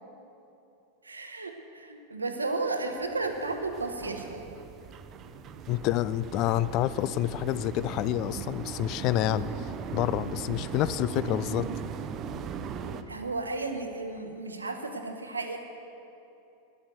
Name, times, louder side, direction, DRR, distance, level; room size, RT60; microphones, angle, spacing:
voice 1, 1.0-4.5 13.1-15.6, right 3 dB, 90° right, 5 dB, 1.0 m, -33 dB
sound 1, 3.0-13.0, right 7 dB, 35° right, 0.6 m, -39 dB
voice 2, 5.7-11.7, left 13 dB, 45° left, 17 dB, 0.3 m, -28 dB
9.6 x 8.7 x 7.9 m, 2.8 s
figure-of-eight pair, 90°, 0 cm